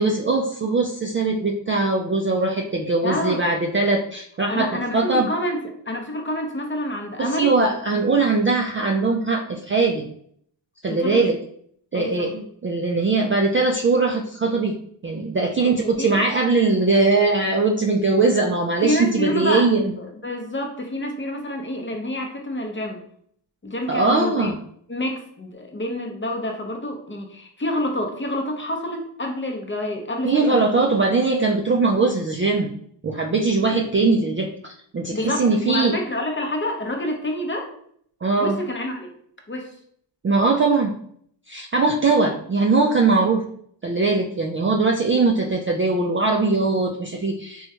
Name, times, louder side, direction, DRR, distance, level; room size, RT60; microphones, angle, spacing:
voice 1, 0.0-5.3 7.2-10.0 10.8-11.4 11.9-14.7 15.0-19.9 23.9-24.6 30.2-32.7 33.0-34.5 34.9-36.0 38.2-38.6 40.2-40.9 41.5-43.5 43.8-47.7, right 3 dB, 30° right, 0 dB, 0.3 m, -21 dB
voice 2, 3.0-3.4 4.5-5.6 5.9-7.5 10.9-11.3 11.9-12.3 15.6-16.2 18.8-19.7 20.0-23.0 23.6-24.5 24.9-30.9 35.1-37.7 38.4-39.1 39.5-39.7, left 1 dB, 25° left, 2 dB, 0.6 m, -28 dB
3.0 x 2.3 x 2.8 m, 0.64 s
cardioid pair, 50°, 50 cm